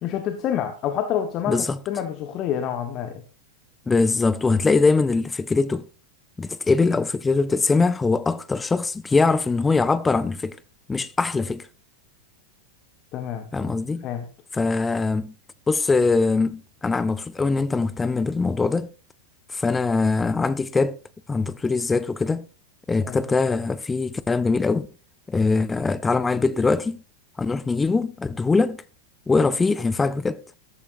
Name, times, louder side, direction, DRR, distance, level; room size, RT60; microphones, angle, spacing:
voice 1, 0.0-3.2 13.1-13.7 14.0-14.3 23.0-23.2, left 9 dB, 35° left, 1.4 m, -28 dB
voice 2, 1.5-1.8 3.9-5.8 6.4-10.6 10.9-11.7 13.5-14.1 14.5-15.3 15.7-18.9 19.5-21.0 21.3-22.5 22.9-24.9 25.3-27.0 27.4-28.8 29.3-30.4, left 4 dB, 10° left, 0.6 m, -22 dB
15.0 x 13.5 x 2.6 m
figure-of-eight pair, 90°, 0 cm